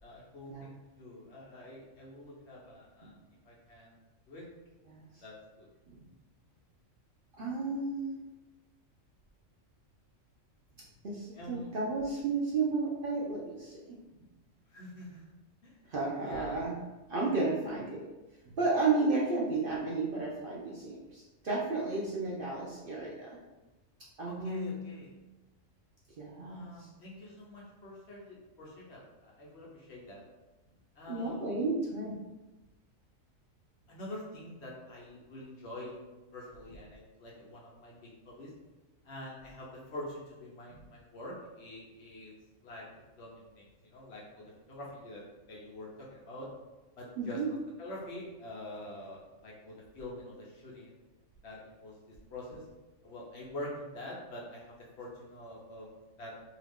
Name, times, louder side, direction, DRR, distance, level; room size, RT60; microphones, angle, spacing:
voice 1, 0.0-3.1 3.4-3.9 4.3-4.5 5.2-5.7 11.3-11.7 14.7-15.2 15.6-15.8 16.2-16.6 24.2-25.1 26.4-30.2 30.9-31.5 33.9-36.0 36.3-38.5 39.0-42.3 42.6-42.8 43.2-46.5 47.0-47.4 47.8-50.9 51.4-52.6 53.0-55.9 56.2-56.3, left 1 dB, 60° left, -4 dB, 1.0 m, -46 dB
voice 2, 7.4-8.1 11.0-14.0 15.9-16.8 17.1-18.0 18.4-23.3 24.2-24.9 26.2-26.9 31.1-32.2 47.2-47.5, right 3 dB, 55° right, -5 dB, 0.6 m, -33 dB
2.8 x 2.5 x 3.5 m, 1.1 s
omnidirectional pair, 1.3 m